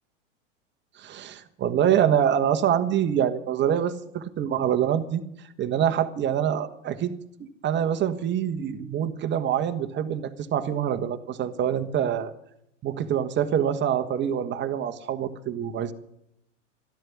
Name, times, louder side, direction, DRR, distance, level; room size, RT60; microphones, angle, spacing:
voice 1, 1.0-5.2 5.6-7.1 7.4-12.3 12.8-15.9, right 9 dB, 30° right, 9 dB, 1.5 m, -25 dB
13.0 x 12.5 x 7.3 m, 0.77 s
hypercardioid pair, 105°, 38 cm